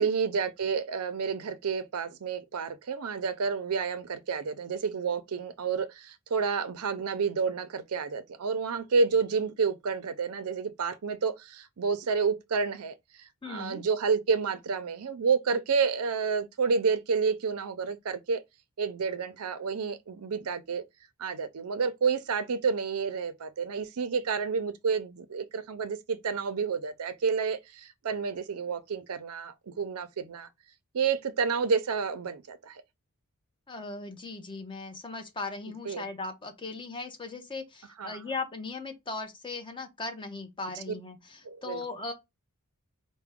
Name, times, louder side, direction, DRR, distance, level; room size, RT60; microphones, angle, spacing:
voice 1, 0.0-12.9 13.5-18.4 18.8-20.8 21.2-30.5 30.9-32.8 35.9-36.0 38.0-38.2 41.5-41.8, right 5 dB, 80° right, 0.5 m, -29 dB
voice 2, 13.4-13.8 33.7-42.1, left 3 dB, 20° left, 0.8 m, -38 dB
4.6 x 2.2 x 3.4 m
head